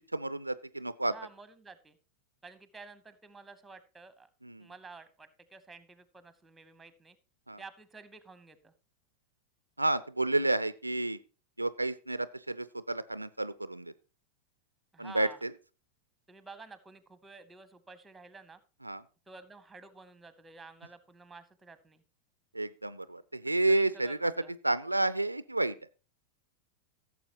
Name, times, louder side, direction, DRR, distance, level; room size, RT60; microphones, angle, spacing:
voice 1, 0.1-1.1 4.4-4.7 7.5-7.6 9.8-11.2 11.6-13.9 15.0-15.5 18.8-19.0 22.5-24.3 24.6-25.8, right 2 dB, 85° right, 16 dB, 0.4 m, -30 dB
voice 2, 1.1-2.0 2.4-4.3 4.6-7.2 7.6-8.7 14.9-15.4 16.3-18.6 19.3-22.0 23.4-24.5, right 4 dB, 10° right, 14 dB, 0.9 m, -51 dB
16.0 x 7.2 x 3.0 m, 0.34 s
figure-of-eight pair, 90°, 0 cm